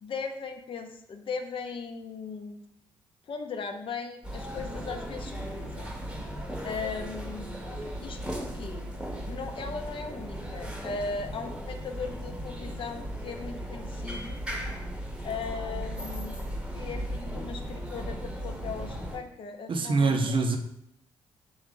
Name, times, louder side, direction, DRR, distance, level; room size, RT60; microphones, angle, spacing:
voice 1, 0.0-2.6 3.3-5.9 6.6-7.5 8.0-8.9 9.3-14.4 15.2-16.4 16.7-20.4, left 5 dB, 50° left, 0.5 m, -38 dB
sound 1, 4.2-19.2, equal, 5° right, 0.9 m, -37 dB
voice 2, 19.7-20.6, right 3 dB, 50° right, 0.6 m, -24 dB
3.4 x 2.8 x 3.7 m
supercardioid pair, 55°, 11 cm